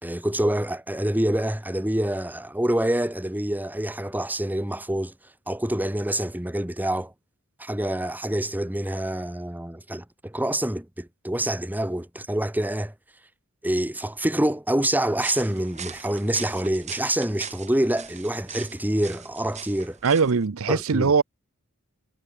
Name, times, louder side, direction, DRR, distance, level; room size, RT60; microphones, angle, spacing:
voice 1, 0.0-5.1 5.5-7.1 7.6-12.9 13.6-20.0 20.7-21.1, right 1 dB, 10° right, 1.5 m, -26 dB
sound 1, 15.2-20.5, right 7 dB, 30° right, 3.0 m, -41 dB
voice 2, 20.0-21.2, right 5 dB, 70° right, 0.7 m, -21 dB
head